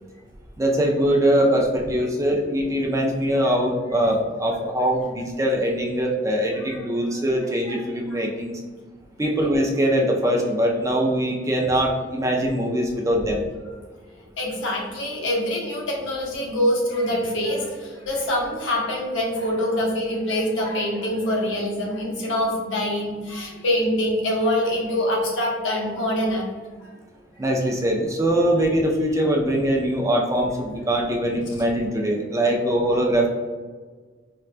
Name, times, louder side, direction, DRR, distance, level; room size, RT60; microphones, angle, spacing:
voice 1, 0.6-8.6 9.2-13.4 27.4-33.3, right 1 dB, 15° right, 0 dB, 0.4 m, -22 dB
voice 2, 14.4-26.5 26.8-26.9, left 1 dB, 90° left, -2 dB, 0.8 m, -25 dB
4.4 x 2.2 x 2.4 m, 1.5 s
head